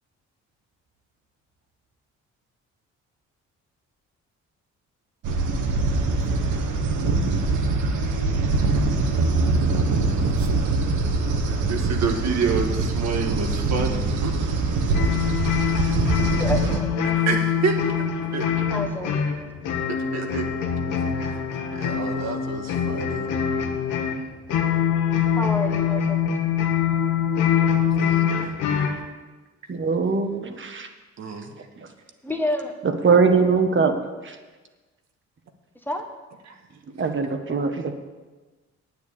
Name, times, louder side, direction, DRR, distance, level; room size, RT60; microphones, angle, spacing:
sound 1, 5.2-16.8, right 3 dB, 80° right, 1.5 m, -23 dB
voice 1, 11.5-14.3 17.0-18.7 19.9-20.5 20.9-23.3 28.0-28.3 31.2-31.6 36.5-36.6, right 5 dB, 60° right, 4 dB, 1.7 m, -29 dB
sound 2, 14.9-29.0, left 8 dB, 85° left, 1.5 m, -24 dB
voice 2, 16.4-16.9 18.7-19.2 25.4-26.2 32.2-32.8 35.9-36.0, left 1 dB, 5° left, 4 dB, 1.4 m, -28 dB
voice 3, 29.7-30.9 31.8-31.9 32.8-33.9 34.2-34.4 36.9-37.9, right 5 dB, 40° right, 6 dB, 1.5 m, -21 dB
9.1 x 8.3 x 8.7 m, 1.2 s
cardioid pair, 90°, 30 cm